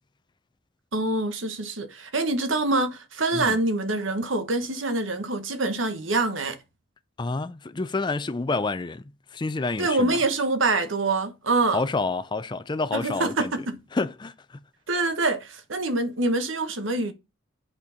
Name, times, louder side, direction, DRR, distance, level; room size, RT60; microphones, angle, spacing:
voice 1, 0.9-6.6 9.8-11.8 12.9-13.8 14.9-17.1, right 2 dB, 85° right, 1.3 m, -25 dB
voice 2, 7.2-9.0 9.3-10.2 11.7-13.5 13.9-14.6, left 3 dB, 25° left, 0.4 m, -28 dB
8.6 x 4.4 x 5.1 m
head